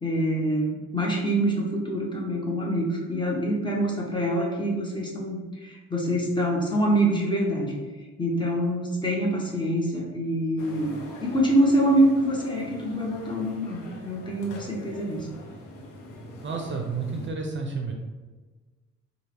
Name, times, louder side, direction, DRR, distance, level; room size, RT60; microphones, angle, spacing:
voice 1, 0.0-7.7 8.2-10.9 11.2-15.3, right 1 dB, 15° left, -2 dB, 1.0 m, -25 dB
sound 1, 10.6-17.3, left 1 dB, 85° left, 0.9 m, -43 dB
voice 2, 16.4-17.9, right 4 dB, 40° right, 2 dB, 0.6 m, -31 dB
4.5 x 2.4 x 3.4 m, 1.3 s
cardioid pair, 90°, 30 cm